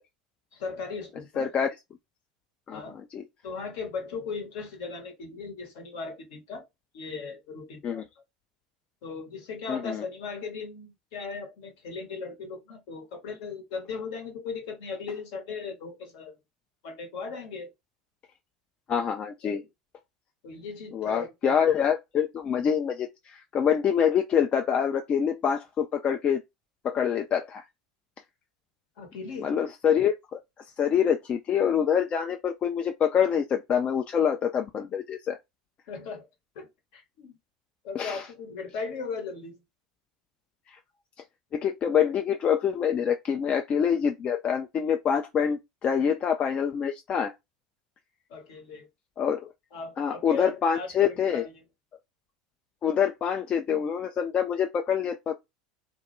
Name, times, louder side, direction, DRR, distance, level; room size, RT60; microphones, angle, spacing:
voice 1, 0.5-1.5 2.7-3.0 3.4-6.7 6.9-8.0 9.0-16.4 16.8-17.7 19.4-19.7 20.4-21.5 29.0-29.5 35.9-36.3 36.5-37.3 37.8-39.6 48.3-48.9 49.7-51.6, left 4 dB, 60° left, 0.9 m, -38 dB
voice 2, 1.4-1.7 2.7-3.3 7.8-8.0 9.7-10.0 18.9-19.6 20.9-26.4 26.8-27.6 29.4-30.4 30.8-35.4 37.9-38.2 40.7-40.8 41.5-47.3 49.2-49.5 50.0-51.4 52.8-55.4, left 8 dB, 35° left, 0.3 m, -26 dB
2.2 x 2.1 x 3.0 m
hypercardioid pair, 75°, 3 cm